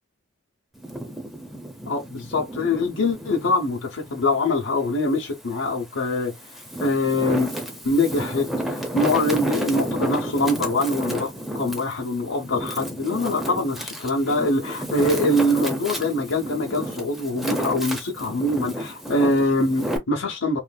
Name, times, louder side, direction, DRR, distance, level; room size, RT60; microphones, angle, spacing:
Wind, 0.7-3.6 4.1-5.4 6.0-20.0, right 1 dB, ahead, 0.6 m, -31 dB
voice 1, 1.9-6.3 6.8-7.5 7.8-20.6, left 2 dB, 90° left, 0.8 m, -24 dB
3.1 x 2.5 x 2.2 m
head